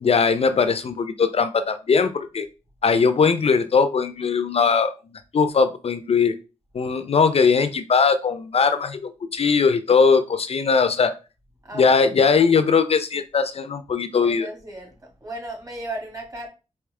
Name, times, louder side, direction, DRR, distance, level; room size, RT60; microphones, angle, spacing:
voice 1, 0.0-2.5 2.8-6.3 6.7-11.1 11.7-14.5, left 5 dB, 55° left, 0.5 m, -20 dB
voice 2, 11.6-12.0 14.2-16.5, right 1 dB, 30° right, 2.4 m, -35 dB
4.8 x 3.0 x 3.3 m
cardioid pair, 55°, 12 cm